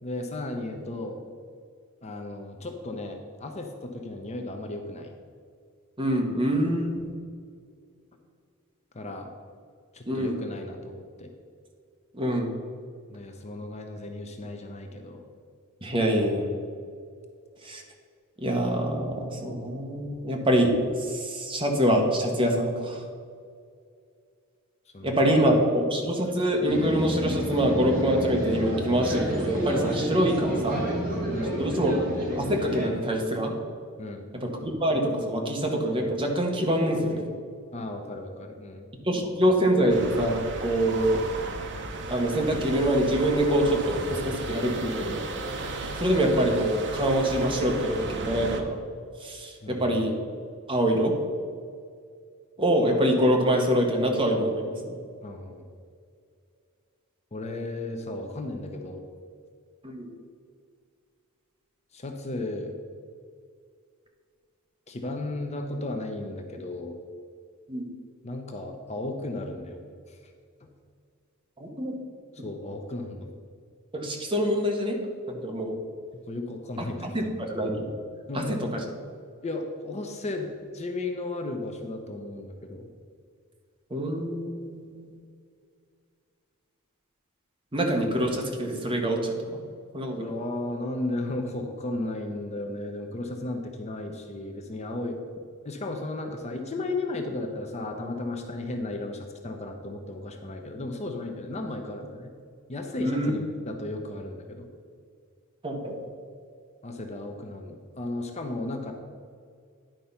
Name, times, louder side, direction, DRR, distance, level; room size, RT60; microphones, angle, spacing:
voice 1, 0.0-1.2 2.0-5.1 8.9-9.3 9.9-11.3 13.1-15.2 24.9-25.1 31.3-31.7 34.0-34.3 37.7-38.9 49.6-50.0 55.2-55.6 57.3-59.0 61.9-62.8 64.9-67.0 68.2-69.8 70.1-70.2 70.6-70.7 72.3-73.3 76.3-77.3 78.3-78.6 79.4-82.9 90.2-95.2 95.6-102.3 102.7-104.7 106.8-108.9, left 2 dB, 30° left, 4 dB, 0.6 m, -35 dB
voice 2, 6.0-7.1 10.1-10.4 12.1-12.5 15.8-16.5 17.6-17.8 18.4-23.0 25.0-30.8 31.6-31.9 32.3-33.5 34.3-37.3 39.0-41.2 42.1-45.2 46.0-48.8 49.2-50.2 50.7-51.1 52.6-55.0 59.8-60.1 67.7-67.9 71.6-71.9 73.9-75.0 75.3-75.8 77.0-77.7 78.3-78.4 78.7-78.8 83.9-85.1 87.7-89.4 89.9-90.3 103.0-103.3 105.6-106.1, equal, 25° right, 1 dB, 1.1 m, -25 dB
sound 1, 26.7-32.9, equal, 40° right, 2.4 m, -30 dB
sound 2, 39.9-48.6, right 2 dB, 55° right, 0.8 m, -35 dB
10.5 x 4.6 x 5.6 m, 2.2 s
head